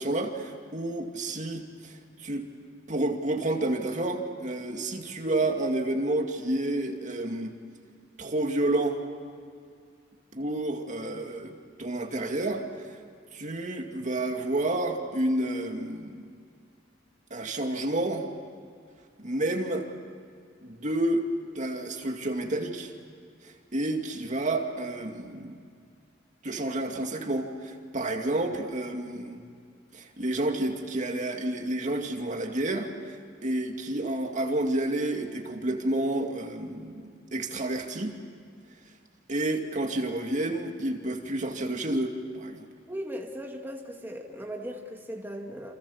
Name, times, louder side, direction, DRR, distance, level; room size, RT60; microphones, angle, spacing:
voice 1, 0.0-2.4 2.9-7.5 8.2-9.0 10.3-11.5 11.8-13.0 13.3-16.3 17.3-18.3 19.2-19.9 20.6-21.3 21.6-22.9 23.4-25.6 26.4-29.4 29.9-38.2 39.3-42.7, right 1 dB, 40° right, 3 dB, 2.3 m, -30 dB
voice 2, 42.9-45.7, equal, 10° right, 1 dB, 2.3 m, -38 dB
29.5 x 27.5 x 7.2 m, 2.2 s
head